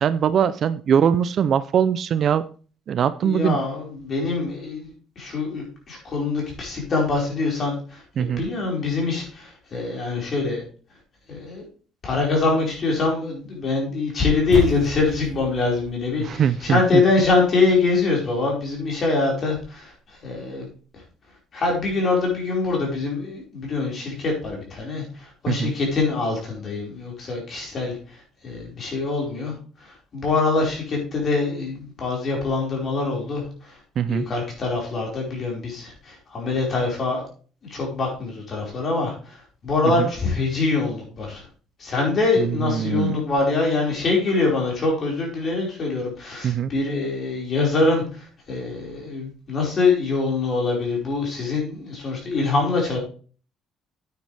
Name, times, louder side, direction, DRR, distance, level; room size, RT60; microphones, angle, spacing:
voice 1, 0.0-2.4 2.9-3.6 8.2-8.4 16.2-17.0 25.5-25.7 34.0-34.3 40.0-40.1 42.4-43.2 46.4-46.7, right 8 dB, 40° right, 14 dB, 0.4 m, -21 dB
voice 2, 3.2-10.6 11.3-11.6 12.0-19.9 20.2-20.7 21.5-27.9 28.4-29.5 29.8-33.7 34.1-37.2 37.7-39.4 39.6-41.4 41.8-53.0, left 3 dB, 35° left, -1 dB, 4.8 m, -24 dB
sound 1, 14.5-19.0, equal, 10° left, 4.6 m, -33 dB
9.4 x 9.3 x 3.4 m, 0.38 s
cardioid pair, 160°, 0 cm